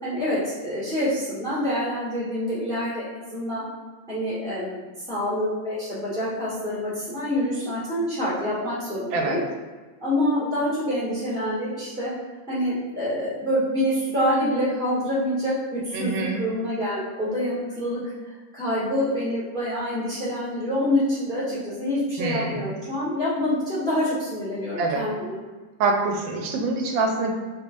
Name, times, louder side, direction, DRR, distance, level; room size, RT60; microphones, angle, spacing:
voice 1, 0.0-3.6 4.1-4.8 5.1-9.4 10.0-12.1 12.5-25.4, equal, 5° left, -10 dB, 0.9 m, -26 dB
voice 2, 9.1-9.4 15.9-16.5 22.2-22.7 24.8-25.0 25.8-27.3, right 3 dB, 75° right, 2 dB, 1.3 m, -25 dB
3.5 x 3.0 x 2.5 m, 1.3 s
omnidirectional pair, 2.2 m